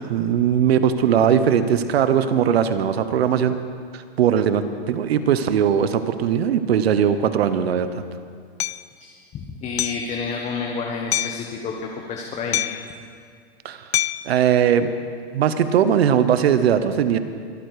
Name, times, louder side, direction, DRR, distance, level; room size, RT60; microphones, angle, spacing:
voice 1, 0.0-3.5 3.9-7.9 13.6-13.9 14.2-14.9 15.3-17.2, right 8 dB, 75° right, 11 dB, 1.1 m, -19 dB
Hammer, 8.6-8.8 9.8-10.1 11.1-11.5 12.5-12.9 13.9-14.3, left 13 dB, 85° left, 0.6 m, -25 dB
voice 2, 9.0-12.6, left 5 dB, 20° left, 0 dB, 1.3 m, -30 dB
24.5 x 9.1 x 4.9 m, 2.2 s
hypercardioid pair, 135°, 31 cm